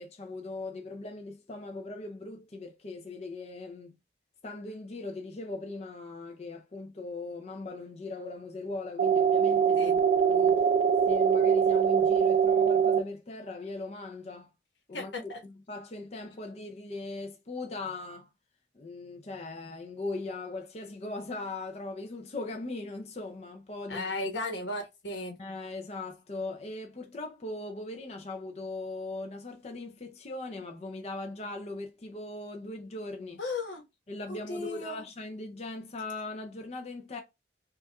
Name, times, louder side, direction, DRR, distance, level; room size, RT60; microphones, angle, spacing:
voice 1, 0.0-4.0 4.4-9.9 10.2-10.6 11.1-14.5 14.9-15.1 15.4-18.3 18.7-24.1 25.4-33.4 34.1-37.2, left 2 dB, 35° left, 0.5 m, -39 dB
sound 1, 9.0-13.0, right 7 dB, 65° right, 0.5 m, -23 dB
voice 2, 14.9-15.4 23.9-25.4 33.4-33.8 34.3-35.0, left 2 dB, 80° left, 1.2 m, -35 dB
5.4 x 2.4 x 2.2 m
head